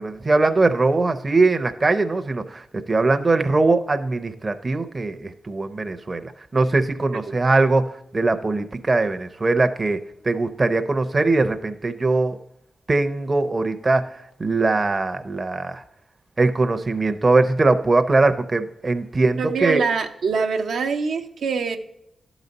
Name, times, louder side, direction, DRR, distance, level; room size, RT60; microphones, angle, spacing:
voice 1, 0.0-10.0 10.2-12.4 12.9-15.8 16.4-19.8, right 3 dB, 35° right, 8 dB, 0.6 m, -21 dB
voice 2, 19.4-21.8, right 5 dB, 85° right, 4 dB, 0.7 m, -24 dB
11.5 x 4.0 x 5.3 m, 0.80 s
cardioid pair, 90°, 0 cm